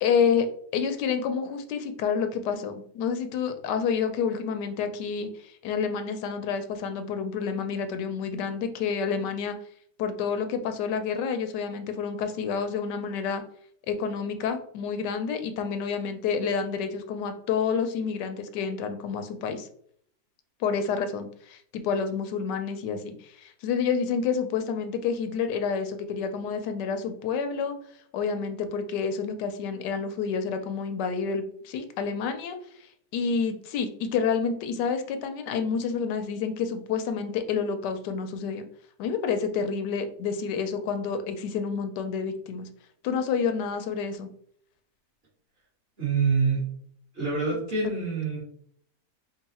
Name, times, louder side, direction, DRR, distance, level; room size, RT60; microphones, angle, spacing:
voice 1, 0.0-0.5 0.7-9.6 10.0-13.4 13.9-19.7 20.6-27.7 28.1-32.6 33.1-38.7 39.0-42.7 43.0-44.3, left 6 dB, 85° left, 8 dB, 1.2 m, -29 dB
voice 2, 46.0-46.6 47.1-48.4, right 4 dB, 35° right, -8 dB, 1.8 m, -26 dB
3.8 x 2.4 x 4.2 m, 0.63 s
omnidirectional pair, 1.8 m